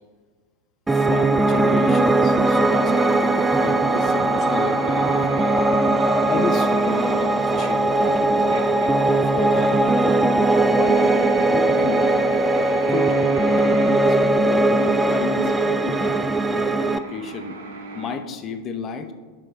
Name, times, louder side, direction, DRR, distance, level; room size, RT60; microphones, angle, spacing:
voice 1, 0.9-5.6 6.3-8.7 9.2-10.3 10.7-12.0 12.9-13.2 13.6-14.7 15.1-16.2 16.5-17.6 17.9-19.1, left 5 dB, 30° left, 7 dB, 0.7 m, -32 dB
Piano, 0.9-17.0, right 2 dB, 10° right, 0.3 m, -19 dB
sound 1, 0.9-18.2, right 3 dB, 65° right, 0.8 m, -39 dB
11.0 x 6.3 x 2.2 m, 1.5 s
figure-of-eight pair, 90°, 0 cm